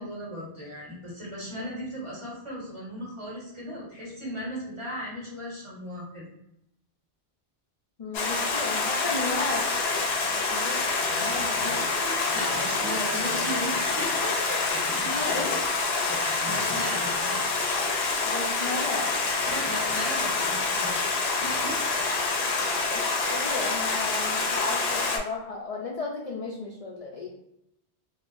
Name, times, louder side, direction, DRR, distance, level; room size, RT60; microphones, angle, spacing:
voice 1, 0.0-6.2 9.0-9.3 12.3-15.6 16.1-17.4 19.4-20.9 21.4-22.1 23.2-23.4, equal, 30° right, -7 dB, 1.3 m, -36 dB
voice 2, 8.0-9.6 10.3-10.8 11.2-11.9 15.1-15.6 18.2-19.1 22.9-23.0 23.3-27.3, left 3 dB, 55° left, -2 dB, 0.4 m, -34 dB
Stream, 8.1-25.2, left 3 dB, 70° left, 0.8 m, -27 dB
sound 1, 11.0-17.3, right 1 dB, 55° right, 1.3 m, -44 dB
3.6 x 2.2 x 2.5 m, 0.80 s
omnidirectional pair, 1.1 m